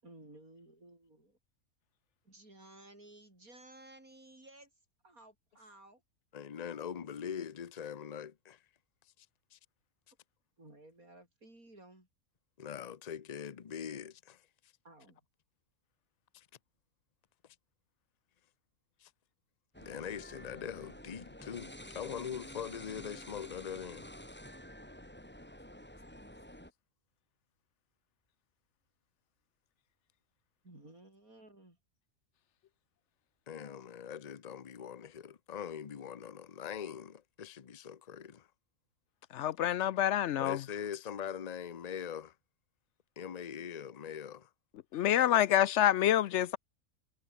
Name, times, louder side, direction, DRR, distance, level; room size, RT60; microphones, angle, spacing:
voice 1, 0.0-1.4 2.2-4.7 5.0-6.0 10.6-12.1 14.8-15.2 30.6-31.8, right 2 dB, 80° right, 8.1 m, -56 dB
voice 2, 6.3-8.6 9.5-9.6 12.6-14.4 16.3-16.5 19.0-19.1 19.8-24.1 33.5-38.5 40.4-42.3 43.2-44.5, left 8 dB, 35° left, 0.8 m, -42 dB
sound 1, 19.7-26.7, equal, 5° left, 3.4 m, -50 dB
voice 3, 39.3-40.6 44.9-46.6, left 11 dB, 65° left, 0.8 m, -27 dB
omnidirectional pair, 1.5 m